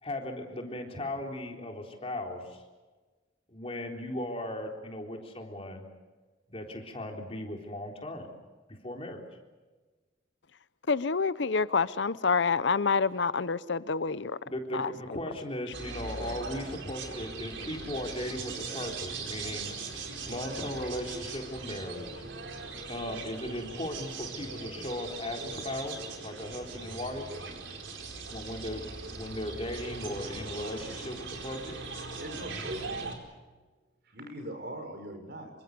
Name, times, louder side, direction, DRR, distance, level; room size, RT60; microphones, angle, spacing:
voice 1, 0.0-2.6 3.5-5.8 6.5-8.3 8.8-9.2 14.5-22.3 22.9-27.3 28.3-31.8, left 1 dB, 30° left, 3.8 m, -37 dB
voice 2, 10.9-14.4 14.7-14.9, left 5 dB, 65° left, 0.7 m, -27 dB
sound 1, 15.7-33.2, right 4 dB, 75° right, 4.6 m, -40 dB
voice 3, 32.2-33.2 34.0-35.5, right 1 dB, 55° right, 5.8 m, -40 dB
27.0 x 24.5 x 6.8 m
head